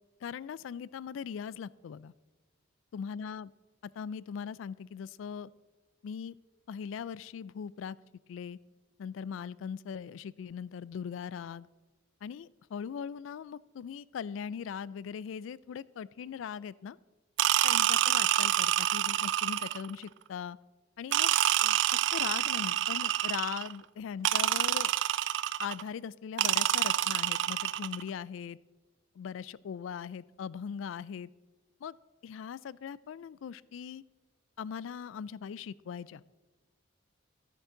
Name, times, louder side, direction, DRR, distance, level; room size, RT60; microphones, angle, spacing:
voice 1, 0.2-2.1 2.9-3.5 4.0-5.5 6.0-6.4 6.7-8.0 8.3-8.6 9.0-11.7 12.2-17.0 17.6-20.6 21.0-21.3 21.6-21.8 22.1-24.9 25.6-28.6 29.2-31.3 31.8-31.9 32.2-34.0 34.6-36.2, left 7 dB, 75° left, 20 dB, 0.3 m, -40 dB
sound 1, 17.4-19.9 21.1-23.7 24.2-25.8 26.4-28.0, right 12 dB, 65° right, 0.3 m, -27 dB
13.5 x 9.1 x 3.8 m, 1.2 s
head